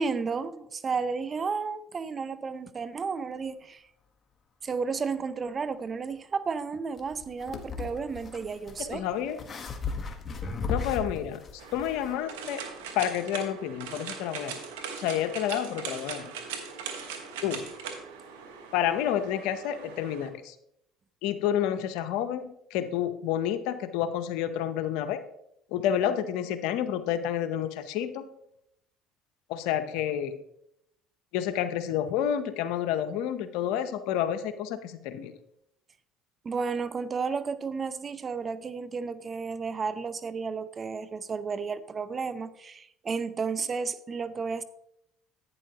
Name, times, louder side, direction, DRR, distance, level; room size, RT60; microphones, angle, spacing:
voice 1, 0.0-3.8 4.6-9.1 36.4-44.6, right 5 dB, 35° right, 14 dB, 0.7 m, -32 dB
sound 1, 7.0-12.2, left 4 dB, 40° left, 1.4 m, -36 dB
voice 2, 8.8-9.4 10.7-11.4 11.7-12.6 12.9-14.6 15.0-16.3 17.4-17.7 18.7-20.5 21.2-25.2 25.7-28.3 29.5-30.4 31.3-35.3, left 10 dB, 75° left, 11 dB, 0.8 m, -29 dB
sound 2, 11.6-20.3, right 6 dB, 90° right, 1.3 m, -40 dB
11.0 x 9.2 x 2.9 m, 0.76 s
supercardioid pair, 80°, 0 cm